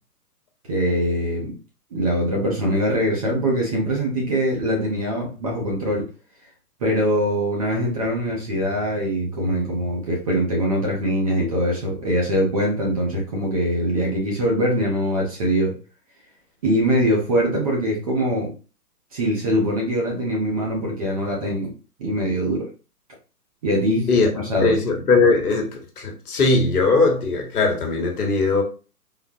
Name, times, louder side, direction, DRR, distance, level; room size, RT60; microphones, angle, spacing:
voice 1, 0.7-1.5 1.9-6.1 6.8-15.7 16.6-18.5 19.1-21.7 22.0-22.7 23.6-24.1 24.3-24.7, equal, 25° right, 0.6 m, -22 dB
voice 2, 24.6-28.6, left 3 dB, 65° left, 1.3 m, -19 dB
3.8 x 2.1 x 2.7 m
hypercardioid pair, 145°, 48 cm